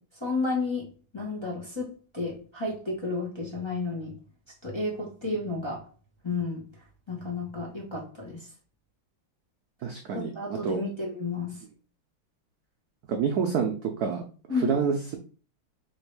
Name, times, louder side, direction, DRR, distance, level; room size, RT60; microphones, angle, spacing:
voice 1, 0.1-0.9 1.1-4.1 4.6-5.8 6.2-6.6 7.1-8.5 10.1-11.6 14.5-14.8, left 3 dB, 20° left, -4 dB, 0.9 m, -32 dB
voice 2, 9.8-10.3 10.6-10.8 13.1-14.2 14.6-15.2, right 6 dB, 80° right, 4 dB, 0.8 m, -27 dB
3.6 x 2.9 x 4.6 m, 0.38 s
omnidirectional pair, 2.2 m